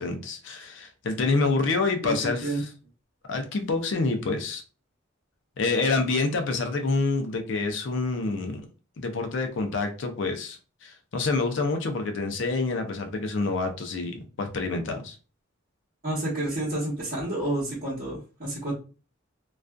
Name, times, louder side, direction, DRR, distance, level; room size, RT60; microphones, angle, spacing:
voice 1, 0.0-2.7 3.3-4.6 5.6-8.6 9.0-15.2, left 3 dB, 60° left, 5 dB, 0.5 m, -27 dB
voice 2, 16.0-18.7, right 1 dB, 40° right, -10 dB, 1.0 m, -29 dB
2.5 x 2.3 x 2.2 m, 0.35 s
head